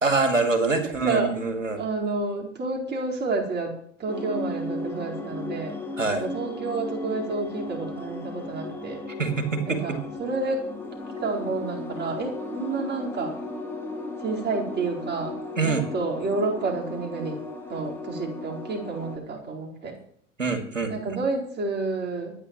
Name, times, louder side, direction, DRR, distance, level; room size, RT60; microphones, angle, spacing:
voice 1, 0.0-1.8 6.0-6.2 9.2-10.0 15.6-15.8 20.4-20.9, right 3 dB, 90° right, 6 dB, 2.4 m, -25 dB
voice 2, 1.7-3.7 4.0-5.8 6.1-9.0 9.7-9.9 10.2-10.6 11.2-13.3 14.2-15.4 15.6-17.4 17.7-20.0 20.9-22.3, right 3 dB, 25° right, -1 dB, 4.5 m, -29 dB
sound 1, 4.1-19.2, left 2 dB, 5° left, 3.4 m, -35 dB
24.5 x 10.0 x 3.1 m, 0.63 s
figure-of-eight pair, 80°, 37 cm